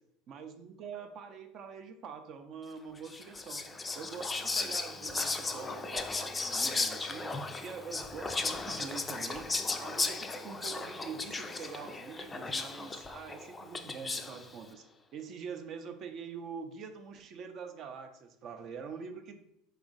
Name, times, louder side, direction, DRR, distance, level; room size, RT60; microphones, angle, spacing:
voice 1, 0.3-3.7 4.0-7.3 7.6-9.5 9.8-14.9 15.1-19.4, right 6 dB, 50° right, 7 dB, 0.4 m, -45 dB
Whispering, 3.0-14.5, left 3 dB, 20° left, 0.3 m, -36 dB
3.1 x 2.4 x 3.7 m, 0.78 s
hypercardioid pair, 80°, 0 cm